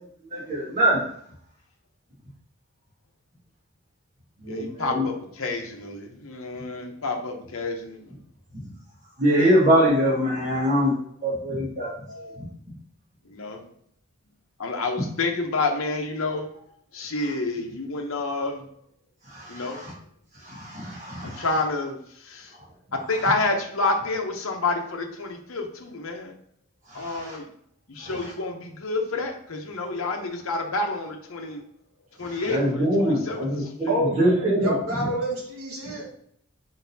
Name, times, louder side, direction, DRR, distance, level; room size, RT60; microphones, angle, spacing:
voice 1, 0.3-1.0 4.4-5.0 9.2-11.0 11.2-11.9 19.5-19.6 20.5-21.4 26.9-27.4 32.5-34.7, equal, 35° right, -6 dB, 1.7 m, -23 dB
voice 2, 4.5-8.2 12.1-12.4 13.2-13.7 14.6-16.7 16.9-18.7 19.5-19.9 21.2-22.5 22.9-26.3 26.9-27.5 27.9-31.6 32.2-33.9, left 3 dB, 70° left, 3 dB, 0.8 m, -29 dB
voice 3, 33.9-36.1, right 1 dB, 85° right, -2 dB, 1.4 m, -28 dB
5.0 x 3.9 x 2.7 m, 0.67 s
head